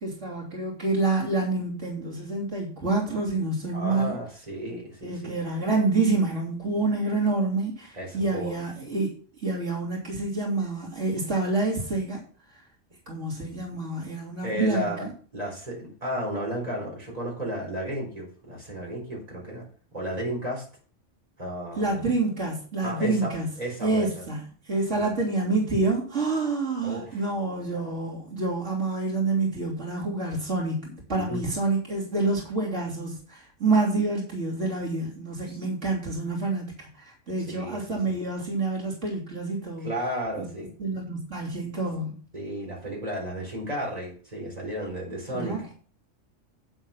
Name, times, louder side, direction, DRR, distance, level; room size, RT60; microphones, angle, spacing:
voice 1, 0.0-4.2 5.0-9.1 9.4-12.2 13.1-15.1 21.8-23.5 23.8-39.9 40.4-40.5 40.8-42.2 45.3-45.7, right 3 dB, 70° right, -4 dB, 3.6 m, -27 dB
voice 2, 3.7-5.3 7.9-8.5 14.4-15.1 15.3-19.7 19.9-20.7 21.4-22.0 22.8-24.2 24.9-25.0 26.8-27.2 31.1-31.4 35.5-35.6 37.5-38.1 39.8-40.7 42.3-45.6, equal, 30° right, -2 dB, 4.3 m, -33 dB
8.9 x 8.0 x 5.8 m, 0.42 s
omnidirectional pair, 1.3 m